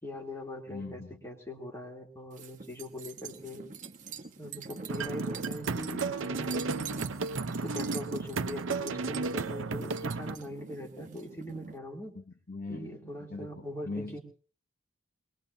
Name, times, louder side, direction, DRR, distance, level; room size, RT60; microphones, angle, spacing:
voice 1, 0.0-3.7 4.4-6.9 7.5-12.2 12.7-14.2, equal, 15° left, 3.1 m, -41 dB
voice 2, 0.7-1.2 12.1-13.0 13.3-14.2, left 3 dB, 45° left, 0.9 m, -41 dB
sound 1, 2.3-11.8, right 6 dB, 40° right, 1.1 m, -45 dB
sound 2, 4.9-10.4, right 3 dB, 70° right, 0.8 m, -33 dB
22.5 x 21.0 x 2.8 m
head